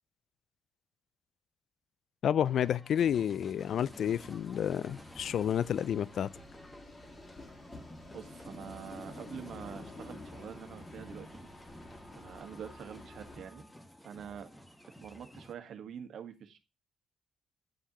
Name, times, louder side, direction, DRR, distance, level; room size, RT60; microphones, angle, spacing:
voice 1, 2.2-6.3, left 9 dB, 65° left, 0.3 m, -30 dB
sound 1, 2.4-15.5, equal, 5° left, 1.3 m, -53 dB
sound 2, 3.6-13.4, left 2 dB, 30° left, 2.5 m, -50 dB
voice 2, 8.1-11.5 12.1-13.6 14.0-14.5 15.0-16.6, right 8 dB, 70° right, 1.4 m, -46 dB
9.1 x 7.1 x 3.0 m
cardioid pair, 90°, 0 cm